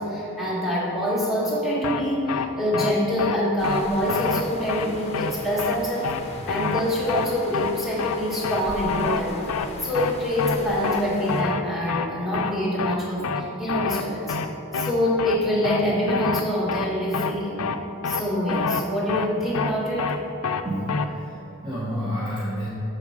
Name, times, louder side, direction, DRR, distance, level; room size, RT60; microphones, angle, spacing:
voice 1, 0.0-9.5 9.8-14.4 14.7-17.6 18.0-20.2, equal, ahead, -7 dB, 1.6 m, -25 dB
sound 1, 1.8-2.0 2.3-2.5 2.7-2.9 3.2-3.4 3.6-3.8 4.1-4.4 4.7-4.9 5.1-5.3 5.6-5.8 6.0-6.2 6.5-6.8 7.1-7.3 7.5-7.7 8.0-8.2 8.4-8.6 8.9-9.2 9.5-9.7 9.9-10.1 10.4-10.6 10.8-11.0 11.3-11.6 11.9-12.1 12.3-12.5 12.8-13.0 13.2-13.4 13.7-14.0 14.3-14.5 14.7-14.9 15.2-15.4 15.6-15.8 16.1-16.4 16.7-16.9 17.1-17.3 17.6-17.8 18.0-18.2 18.5-18.8 19.1-19.3 19.5-19.7 20.0-20.2 20.4-20.6 20.9-21.0, left 5 dB, 80° left, 0.4 m, -27 dB
sound 2, 3.6-11.4, left 2 dB, 30° left, 0.8 m, -40 dB
voice 2, 20.6-22.7, equal, 20° right, -7 dB, 1.0 m, -30 dB
7.1 x 6.7 x 4.9 m, 2.9 s
head